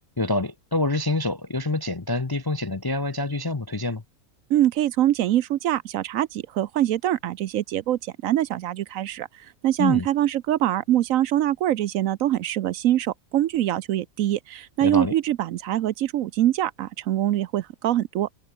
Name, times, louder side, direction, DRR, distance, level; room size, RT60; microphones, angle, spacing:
voice 1, 0.2-4.0 9.8-10.1 14.8-15.1, left 2 dB, 25° left, 0.5 m, -26 dB
voice 2, 4.5-9.3 9.6-18.3, right 13 dB, 70° right, 1.0 m, -24 dB
omnidirectional pair, 1.5 m